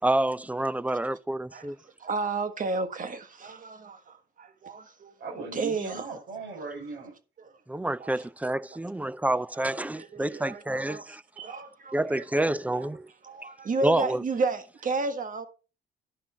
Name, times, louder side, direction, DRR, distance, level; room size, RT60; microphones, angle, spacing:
voice 1, 0.0-1.7 7.7-11.2 11.9-13.1 13.8-14.2, right 1 dB, 5° right, 0.4 m, -28 dB
voice 2, 2.0-5.1 5.5-6.1 7.4-7.5 8.0-8.2 9.7-12.2 12.8-12.9 13.2-15.5, right 3 dB, 40° right, 1.6 m, -32 dB
voice 3, 5.2-7.1, right 4 dB, 70° right, 6.4 m, -38 dB
11.0 x 6.0 x 4.2 m
cardioid pair, 90°, 20 cm